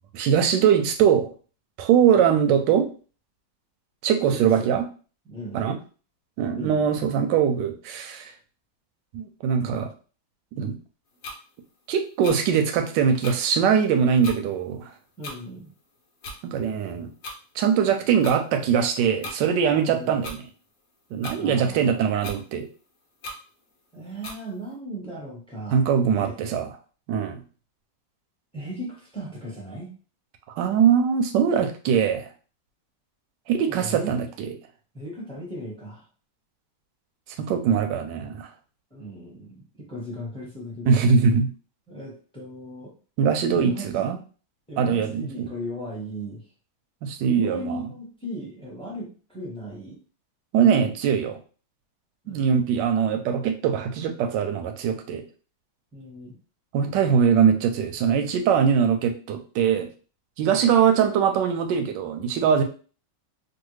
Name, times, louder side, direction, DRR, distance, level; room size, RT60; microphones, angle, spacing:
voice 1, 0.1-1.3 1.8-2.9 4.0-4.9 5.5-5.8 6.4-8.3 9.1-9.9 10.6-10.8 11.9-14.9 16.4-17.1 17.6-20.4 21.1-22.7 25.7-26.7 27.1-27.4 30.6-32.3 33.5-34.3 37.4-38.5 40.9-41.5 43.2-44.2 44.8-45.5 47.0-47.9 50.5-51.4 52.3-55.2 56.7-59.9 60.4-62.6, right 7 dB, 75° right, 6 dB, 1.1 m, -22 dB
voice 2, 4.3-4.7 5.2-5.7 6.5-6.9 15.2-15.7 19.7-20.3 21.4-22.0 23.9-25.8 26.1-26.3 28.5-29.9 33.7-34.2 34.9-36.0 38.9-41.1 41.9-42.9 43.5-44.1 44.7-46.5 47.3-50.0 52.2-52.5 55.9-56.4 60.4-60.8, equal, 5° left, -4 dB, 0.6 m, -37 dB
sound 1, 11.2-11.4 12.2-12.4 13.2-13.4 14.2-14.4 15.2-15.4 16.2-16.4 17.2-17.4 18.2-18.4 19.2-19.4 20.2-20.4 21.2-21.4 22.2-22.4 23.2-23.4 24.2-24.4, left 1 dB, 70° left, 0.8 m, -36 dB
3.2 x 2.4 x 3.1 m, 0.37 s
omnidirectional pair, 2.2 m